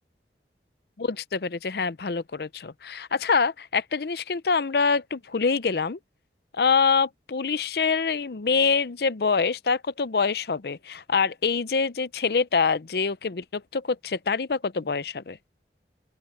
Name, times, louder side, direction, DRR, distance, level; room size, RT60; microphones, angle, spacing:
voice 1, 1.0-6.0 6.5-15.4, left 5 dB, 60° left, 0.6 m, -25 dB
open air
head